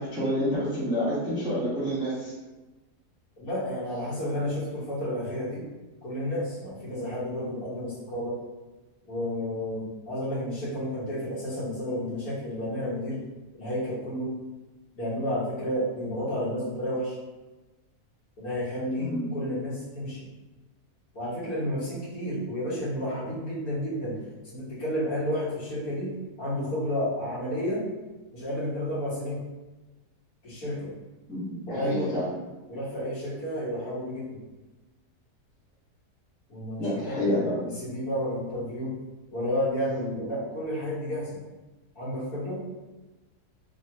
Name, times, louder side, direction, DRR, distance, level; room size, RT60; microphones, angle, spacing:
voice 1, 0.0-2.3 19.0-19.3 31.3-32.2 36.8-37.6, equal, 5° right, -9 dB, 0.6 m, -28 dB
voice 2, 3.4-5.7 6.0-8.4 9.0-13.2 13.5-14.3 15.0-17.2 18.4-20.2 21.2-24.2 24.4-26.1 26.4-27.8 28.3-29.4 30.4-30.9 31.7-32.1 32.7-34.4 36.5-38.9 39.3-41.4 42.0-42.6, equal, 70° left, -9 dB, 1.7 m, -31 dB
3.6 x 2.2 x 2.8 m, 1.1 s
omnidirectional pair, 1.7 m